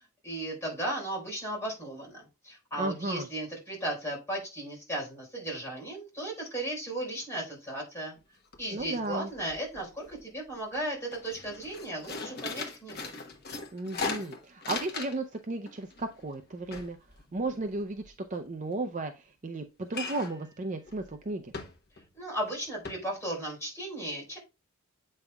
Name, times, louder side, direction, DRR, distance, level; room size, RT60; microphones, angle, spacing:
voice 1, 0.2-8.1 8.6-13.1 22.1-24.4, right 1 dB, 10° left, -3 dB, 4.1 m, -36 dB
voice 2, 2.8-3.3 8.7-9.3 13.7-17.0 17.3-21.5, right 2 dB, 35° right, 6 dB, 0.5 m, -34 dB
sound 1, 8.2-8.3 8.5-9.1 9.4-10.2 10.6-10.7 11.1-15.4 15.7-18.1 19.9-20.5 20.9-21.0 21.5-22.1 22.4-22.5 22.8-22.9, left 4 dB, 45° left, 1.1 m, -39 dB
8.0 x 5.4 x 2.3 m, 0.27 s
head